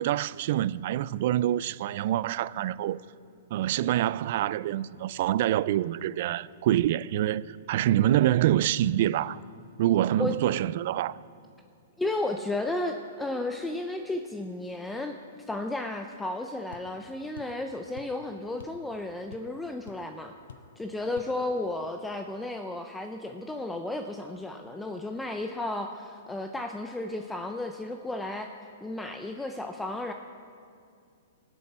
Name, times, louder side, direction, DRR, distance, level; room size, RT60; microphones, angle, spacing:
voice 1, 0.0-3.0 3.5-9.4 9.8-11.2, right 12 dB, 55° right, 0.3 m, -26 dB
voice 2, 12.0-15.2 15.5-20.3 20.8-28.5 28.8-30.1, left 2 dB, 5° left, 0.5 m, -33 dB
sound 1, 16.7-16.9 17.4-17.6 18.0-18.2 18.6-18.8 19.1-19.6 19.9-20.0 20.5-20.7 21.2-21.3, left 6 dB, 85° left, 0.8 m, -47 dB
23.0 x 7.8 x 4.4 m
hypercardioid pair, 140°, 0 cm